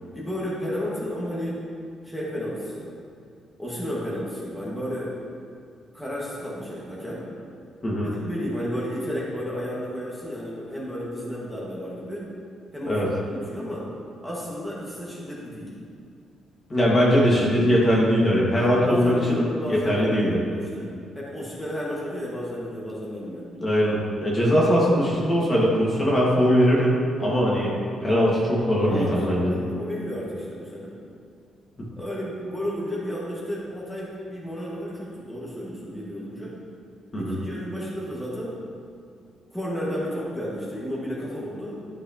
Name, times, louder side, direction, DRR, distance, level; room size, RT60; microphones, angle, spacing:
voice 1, 0.1-1.6 2.0-2.9 3.6-5.1 5.9-7.3 8.0-12.3 12.7-13.0 13.3-13.9 14.2-15.7 18.6-23.5 27.6-27.7 28.8-30.9 32.0-36.5 37.2-38.6 39.5-41.8, equal, 5° left, -7 dB, 1.8 m, -32 dB
voice 2, 7.8-8.1 12.9-13.1 16.7-19.4 19.7-20.4 23.6-27.7 28.0-29.5 37.1-37.4, equal, 30° left, -5 dB, 1.9 m, -21 dB
11.5 x 4.8 x 3.0 m, 2.4 s
cardioid pair, 90°, 0 cm